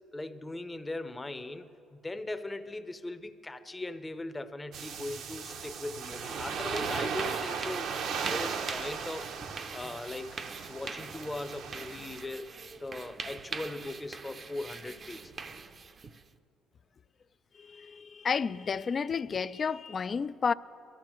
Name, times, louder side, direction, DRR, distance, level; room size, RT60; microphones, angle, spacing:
voice 1, 0.1-7.9 8.2-9.4 9.7-10.4 10.7-12.5 12.8-15.3, left 2 dB, 15° left, 0.7 m, -39 dB
sound 1, 4.7-12.2, right 6 dB, 70° right, 0.8 m, -37 dB
sound 2, 6.1-16.3, right 4 dB, 35° right, 0.6 m, -43 dB
voice 2, 17.5-20.5, left 5 dB, 40° left, 0.3 m, -31 dB
22.5 x 13.5 x 3.1 m
cardioid pair, 90°, 0 cm